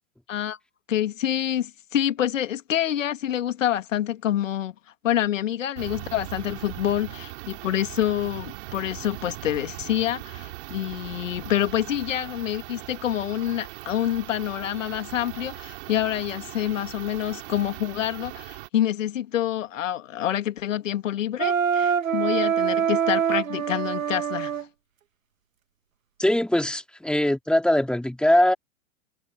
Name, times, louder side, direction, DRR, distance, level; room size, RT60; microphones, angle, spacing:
voice 1, 0.9-4.7 5.0-24.5, left 11 dB, 70° left, 2.4 m, -27 dB
sound 1, 5.8-18.7, right 19 dB, 55° right, 4.2 m, -39 dB
Wind instrument woodwind instrument, 21.4-24.6, right 7 dB, 75° right, 1.7 m, -24 dB
voice 2, 26.2-28.5, left 1 dB, ahead, 2.7 m, -21 dB
figure-of-eight pair, 100°, 40 cm